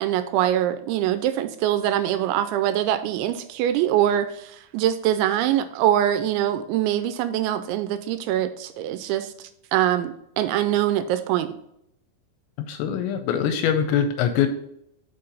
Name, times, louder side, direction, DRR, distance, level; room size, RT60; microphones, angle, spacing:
voice 1, 0.0-9.3 9.7-11.6, right 11 dB, 85° right, 10 dB, 2.8 m, -23 dB
voice 2, 12.6-14.5, left 8 dB, 80° left, 7 dB, 2.7 m, -23 dB
6.7 x 5.6 x 3.9 m, 0.75 s
omnidirectional pair, 5.5 m